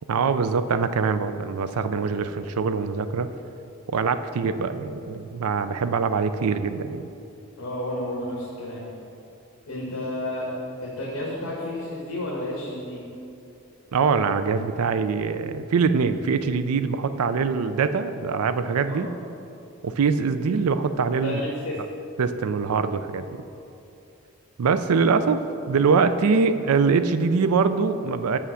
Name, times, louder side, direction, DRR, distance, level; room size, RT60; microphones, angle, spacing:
voice 1, 0.1-3.3 3.9-7.0 13.9-19.1 19.8-21.4 22.2-23.4 24.6-25.4 25.7-28.4, right 5 dB, 85° right, 11 dB, 0.4 m, -23 dB
voice 2, 7.6-8.9 9.7-10.5 10.8-13.1 18.8-19.0 21.2-21.8, left 1 dB, 70° left, -5 dB, 1.3 m, -31 dB
6.9 x 5.7 x 6.3 m, 2.7 s
head